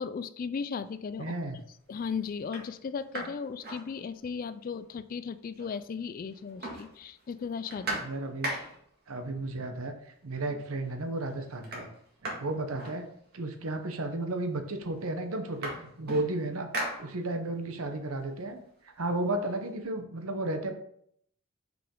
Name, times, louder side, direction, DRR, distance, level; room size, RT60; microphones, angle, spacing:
voice 1, 0.0-1.3 1.9-8.0, left 5 dB, 40° left, 13 dB, 0.3 m, -36 dB
sound 1, 1.0-1.4 2.0-2.1 2.4-4.5 4.8-4.9 5.1-6.0 6.2-9.0 9.9-10.0 10.4-10.9 11.2-13.6 14.4-14.5 14.8-17.6 18.0-19.7, right 1 dB, 45° right, 1.9 m, -40 dB
voice 2, 1.2-1.6 7.9-8.5 9.1-11.9 12.2-13.0 13.3-15.7 16.0-16.7 17.0-18.6 18.8-20.7, right 2 dB, 75° right, 6 dB, 0.9 m, -33 dB
5.7 x 5.2 x 3.7 m, 0.69 s
head